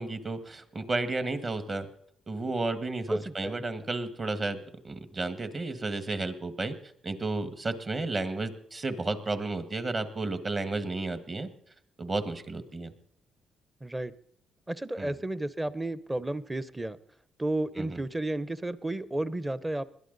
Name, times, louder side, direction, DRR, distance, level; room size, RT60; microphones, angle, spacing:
voice 1, 0.0-1.9 2.3-4.6 4.8-6.7 7.0-11.5 12.0-12.9 15.0-15.2 17.8-18.0, right 2 dB, 35° right, 10 dB, 1.7 m, -32 dB
voice 2, 3.1-3.6 13.8-14.1 14.7-17.0 17.4-19.8, right 1 dB, 15° right, 16 dB, 0.8 m, -32 dB
21.0 x 12.0 x 4.0 m, 0.68 s
cardioid pair, 90°, 0 cm